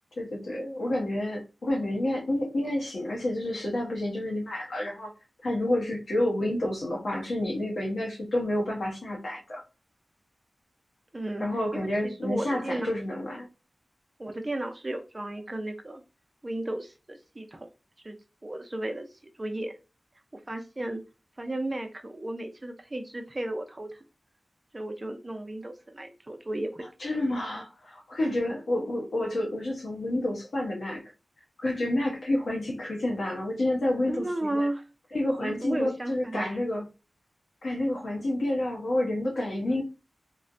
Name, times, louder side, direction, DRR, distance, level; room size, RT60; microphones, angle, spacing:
voice 1, 0.2-5.1 5.4-9.6 11.4-13.5 27.0-31.0 31.6-34.7 35.1-36.8 37.6-39.8, left 1 dB, 85° left, 0.9 m, -29 dB
voice 2, 11.1-11.5 11.7-12.9 14.2-16.0 16.4-17.7 18.0-18.2 18.4-19.1 19.4-19.7 20.5-21.0 21.4-23.9 24.7-26.8 34.1-34.8 35.4-36.4 39.6-39.8, right 1 dB, 35° right, 0.6 m, -34 dB
3.0 x 2.1 x 2.5 m
cardioid pair, 50°, 0 cm